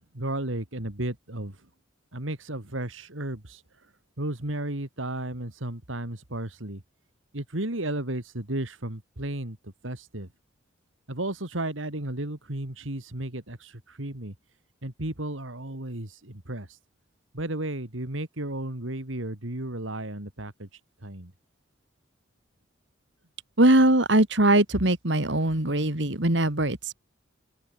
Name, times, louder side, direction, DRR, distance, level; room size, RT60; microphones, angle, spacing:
voice 1, 0.1-1.6 2.1-3.6 4.2-6.8 7.3-10.3 11.1-14.3 14.8-16.7 17.3-20.7 21.0-21.3, right 1 dB, 85° right, 3.1 m, -33 dB
voice 2, 23.6-26.9, right 1 dB, 65° right, 3.1 m, -21 dB
open air
head